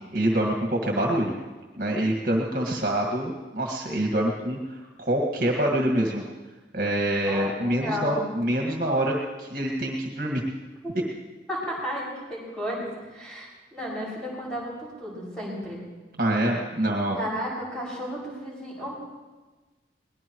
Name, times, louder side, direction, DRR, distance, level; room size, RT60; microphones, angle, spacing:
voice 1, 0.1-1.3 1.8-6.2 6.7-10.4 16.2-17.2, right 1 dB, 50° right, 0 dB, 1.9 m, -26 dB
voice 2, 7.2-8.2 10.8-11.0 11.5-15.8 17.1-18.9, equal, 5° left, -6 dB, 6.4 m, -33 dB
22.0 x 19.5 x 3.1 m, 1.3 s
head